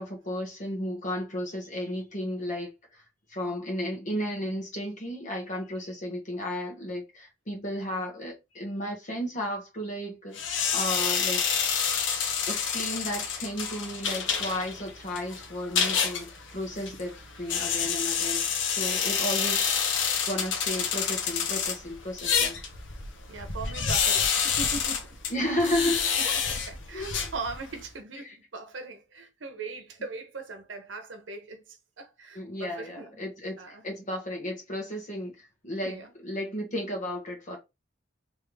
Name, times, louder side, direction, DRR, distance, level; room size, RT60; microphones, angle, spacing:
voice 1, 0.0-3.0 3.3-10.4 10.7-11.4 12.5-19.8 20.2-22.6 25.3-26.3 26.9-27.3 28.2-28.3 32.3-37.6, left 1 dB, 40° left, 1.5 m, -33 dB
sound 1, 10.3-27.9, left 7 dB, 70° left, 0.8 m, -29 dB
voice 2, 23.3-25.2 25.8-33.2 33.6-33.9 35.8-36.1, right 3 dB, 75° right, 0.9 m, -40 dB
3.5 x 3.2 x 3.2 m
head